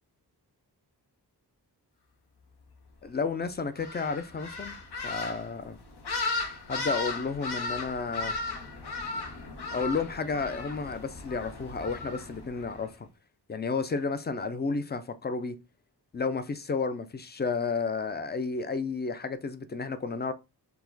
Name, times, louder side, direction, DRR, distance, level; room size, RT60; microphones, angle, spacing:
voice 1, 3.0-4.7 5.0-5.8 6.7-8.3 9.7-13.1 13.5-15.6 16.1-20.3, left 4 dB, 25° left, 0.4 m, -32 dB
sound 1, 3.8-12.8, left 3 dB, 70° left, 0.9 m, -36 dB
4.7 x 2.1 x 3.9 m
wide cardioid pair, 80°, 41 cm